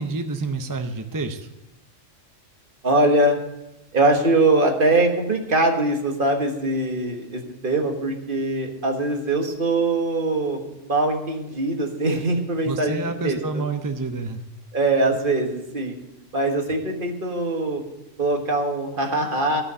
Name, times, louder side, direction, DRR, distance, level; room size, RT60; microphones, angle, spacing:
voice 1, 0.0-1.5 12.6-14.4, right 3 dB, 25° right, 6 dB, 0.5 m, -28 dB
voice 2, 2.8-3.4 3.9-13.6 14.7-16.0 16.3-17.8 18.2-19.6, right 2 dB, 40° right, 3 dB, 1.6 m, -22 dB
14.0 x 5.9 x 8.1 m, 0.92 s
omnidirectional pair, 1.3 m